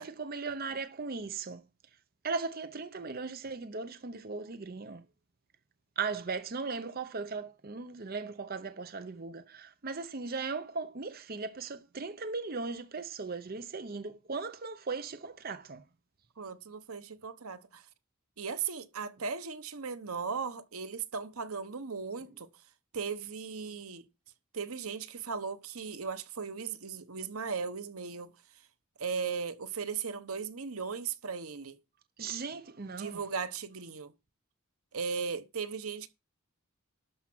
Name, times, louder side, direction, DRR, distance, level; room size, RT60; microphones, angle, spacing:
voice 1, 0.0-1.6 2.2-5.0 6.0-15.8 32.2-33.2, right 4 dB, 45° right, 0.7 m, -38 dB
voice 2, 16.4-17.8 18.4-22.5 22.9-24.0 24.5-28.3 29.0-31.8 32.9-34.1 34.9-36.1, right 5 dB, 85° right, 1.1 m, -37 dB
12.0 x 5.8 x 6.1 m
head